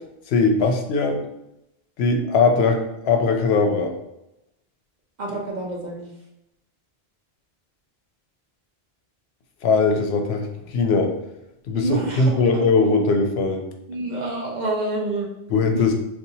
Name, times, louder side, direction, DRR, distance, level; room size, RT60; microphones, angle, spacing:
voice 1, 0.3-1.2 2.0-3.9 9.6-11.1 11.7-13.6 15.5-15.9, left 4 dB, 75° left, 4 dB, 0.8 m, -20 dB
voice 2, 5.2-6.0 11.7-13.1 13.9-15.3 15.7-15.9, right 2 dB, 50° right, -1 dB, 0.7 m, -28 dB
4.0 x 2.4 x 2.7 m, 0.87 s
omnidirectional pair, 1.1 m